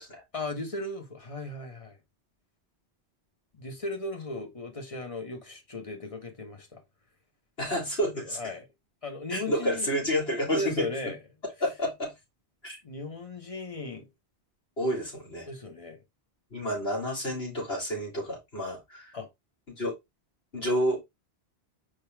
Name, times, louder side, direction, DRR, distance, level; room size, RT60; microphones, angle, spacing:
voice 1, 0.3-2.0 3.5-6.8 8.1-8.6 9.0-9.9 10.5-11.2 12.8-14.1 15.5-16.0 19.1-19.3, left 2 dB, 30° left, 1.3 m, -36 dB
voice 2, 7.6-8.4 9.3-10.9 11.6-12.1 12.6-12.8 14.8-15.5 16.5-19.2 19.7-19.9 20.5-21.0, equal, 65° left, 4.2 m, -30 dB
5.4 x 5.1 x 3.5 m
omnidirectional pair, 1.1 m